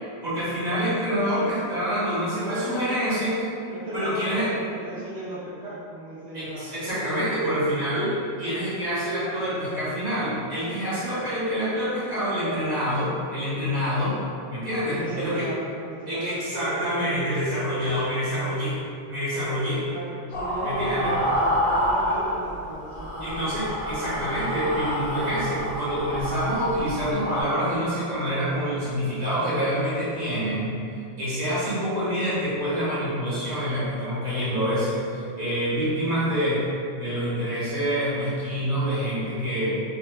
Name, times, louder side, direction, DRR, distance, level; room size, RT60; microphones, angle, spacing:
voice 1, 0.2-3.5 3.9-4.5 6.3-14.2 14.5-15.5 16.1-18.7 19.1-19.8 20.6-21.1 23.2-30.7 31.2-36.6 36.9-39.7, equal, 40° right, -11 dB, 1.1 m, -26 dB
voice 2, 2.2-2.8 3.6-7.1 12.4-12.7 14.9-16.4 19.9-23.3, right 1 dB, 75° right, -11 dB, 1.0 m, -36 dB
sound 1, 20.3-22.6 22.9-27.4, equal, 50° left, 1.0 m, -28 dB
4.3 x 2.2 x 2.2 m, 2.4 s
omnidirectional pair, 1.1 m